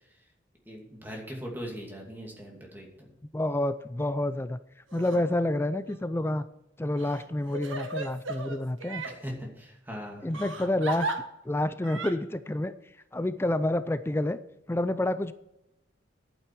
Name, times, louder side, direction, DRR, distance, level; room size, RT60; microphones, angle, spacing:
voice 1, 0.7-3.1 9.2-10.7, equal, 10° right, 0 dB, 2.5 m, -40 dB
voice 2, 3.3-4.6 4.9-6.4 6.8-9.0 10.2-11.1 11.4-12.7 13.1-14.4 14.7-15.3, left 1 dB, 10° left, 12 dB, 0.4 m, -28 dB
Crying sobbing, 4.9-5.2 5.8-6.0 7.0-9.2 10.3-11.2 11.8-12.1, right 2 dB, 85° right, 1.6 m, -35 dB
11.0 x 9.0 x 4.7 m, 0.86 s
head